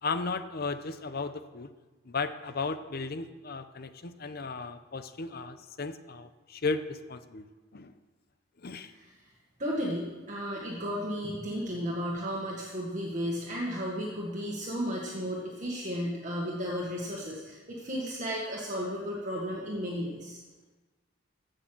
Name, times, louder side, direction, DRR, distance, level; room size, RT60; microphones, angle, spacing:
voice 1, 0.0-1.7 2.1-7.5 7.7-7.9 8.6-8.9, left 4 dB, 50° left, 10 dB, 0.7 m, -35 dB
voice 2, 9.6-20.4, equal, 40° right, -4 dB, 1.8 m, -34 dB
15.5 x 6.5 x 6.1 m, 1.2 s
head